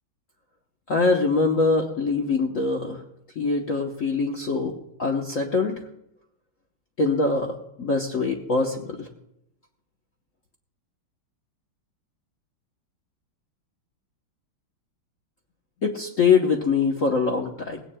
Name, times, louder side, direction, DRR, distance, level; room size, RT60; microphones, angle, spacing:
voice 1, 0.9-3.0 3.4-4.7 5.0-5.7 7.0-9.1 15.8-17.8, left 4 dB, 50° left, 1 dB, 1.2 m, -23 dB
19.0 x 17.0 x 2.3 m, 0.81 s
omnidirectional pair, 2.3 m